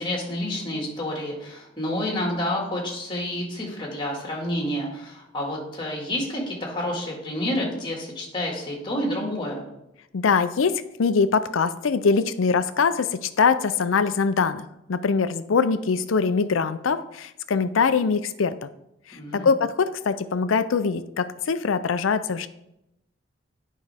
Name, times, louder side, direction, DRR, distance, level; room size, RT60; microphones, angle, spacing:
voice 1, 0.0-9.7 19.2-19.5, left 1 dB, 25° left, -1 dB, 1.9 m, -29 dB
voice 2, 10.1-18.7 19.3-22.5, left 5 dB, 80° left, 12 dB, 0.5 m, -23 dB
9.4 x 5.4 x 3.5 m, 0.86 s
head